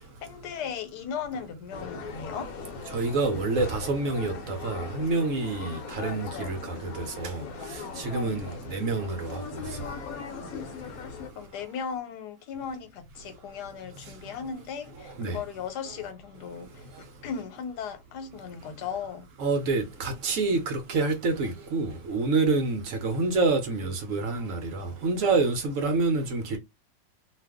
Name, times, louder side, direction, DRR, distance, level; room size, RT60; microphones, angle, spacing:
voice 1, 0.0-2.6 11.3-19.3, left 7 dB, 85° left, 1.3 m, -37 dB
sound 1, 1.7-11.3, left 4 dB, 70° left, 1.1 m, -39 dB
voice 2, 2.9-7.4 8.0-9.4 15.2-15.4 19.4-26.6, right 3 dB, 65° right, 0.9 m, -27 dB
2.6 x 2.4 x 3.5 m
omnidirectional pair, 1.7 m